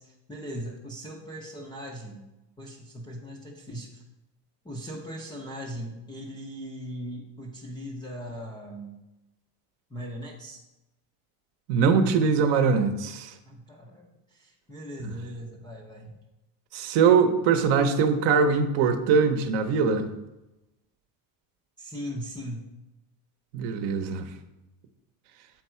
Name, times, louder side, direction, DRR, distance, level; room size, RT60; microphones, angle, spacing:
voice 1, 0.0-2.2 2.6-4.0 4.6-9.0 9.9-10.6 13.5-14.0 14.3-16.1 21.8-22.7, equal, 10° left, -2 dB, 0.3 m, -39 dB
voice 2, 11.7-13.3 16.7-20.1 23.5-24.3, right 5 dB, 55° right, 9 dB, 0.8 m, -22 dB
7.5 x 4.6 x 4.3 m, 0.98 s
cardioid pair, 150°, 49 cm